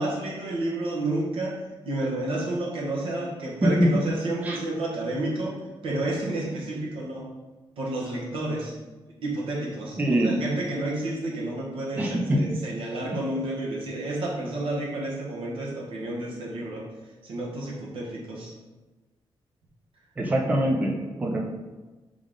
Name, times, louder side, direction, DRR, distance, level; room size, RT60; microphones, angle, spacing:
voice 1, 0.0-1.6 1.8-5.6 5.8-7.3 7.8-8.7 9.1-16.9 17.2-18.5, right 1 dB, 80° right, -2 dB, 1.0 m, -30 dB
voice 2, 10.0-10.3 12.0-12.5 20.2-20.9 21.2-21.4, right 1 dB, 15° right, -1 dB, 0.4 m, -23 dB
3.7 x 3.5 x 3.7 m, 1.2 s
wide cardioid pair, 175°, 9 cm